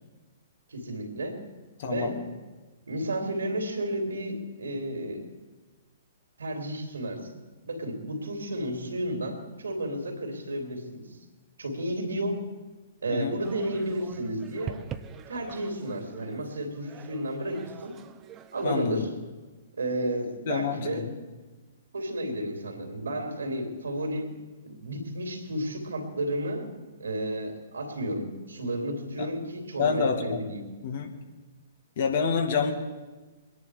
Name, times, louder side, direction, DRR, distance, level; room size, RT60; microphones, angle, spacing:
voice 1, 0.7-1.4 1.8-2.2 2.8-5.2 6.4-7.4 7.6-11.0 11.6-12.4 13.0-14.8 15.3-17.9 18.5-19.1 19.8-21.1 21.9-24.3 24.6-26.7 27.0-30.6, right 1 dB, 75° right, 3 dB, 3.2 m, -32 dB
voice 2, 1.8-2.1 13.1-13.4 18.6-19.1 20.5-21.1 29.2-29.3 29.8-30.5 30.8-31.1 32.0-32.7, left 6 dB, 55° left, 4 dB, 2.0 m, -28 dB
sound 1, 13.4-18.6, right 8 dB, 25° right, 0.8 m, -44 dB
22.5 x 10.5 x 5.0 m, 1.3 s
figure-of-eight pair, 120°, 0 cm